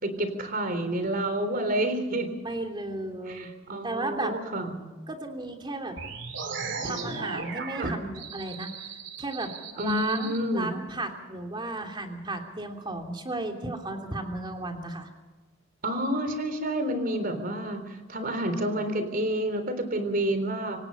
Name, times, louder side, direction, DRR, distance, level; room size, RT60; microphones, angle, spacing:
voice 1, 0.0-2.3 3.3-4.8 7.8-8.0 9.8-10.7 15.8-17.8 18.1-20.8, right 1 dB, 50° right, 9 dB, 3.8 m, -29 dB
voice 2, 2.4-3.5 3.8-4.3 5.1-6.0 6.8-15.1, right 2 dB, 25° right, 3 dB, 3.1 m, -34 dB
sound 1, 6.0-10.4, right 4 dB, 65° right, 3.4 m, -37 dB
26.0 x 18.0 x 5.6 m, 1.2 s
head